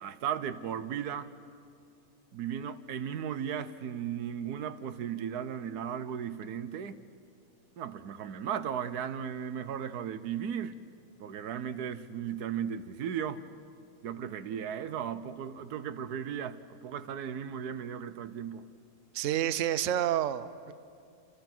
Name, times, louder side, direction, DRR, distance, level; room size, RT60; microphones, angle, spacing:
voice 1, 0.0-1.3 2.3-7.0 7.8-10.8 11.2-13.4 14.0-18.6, right 8 dB, 90° right, 1.4 m, -36 dB
voice 2, 19.1-20.7, right 11 dB, 60° right, 1.0 m, -29 dB
29.0 x 28.0 x 6.1 m
omnidirectional pair, 1.6 m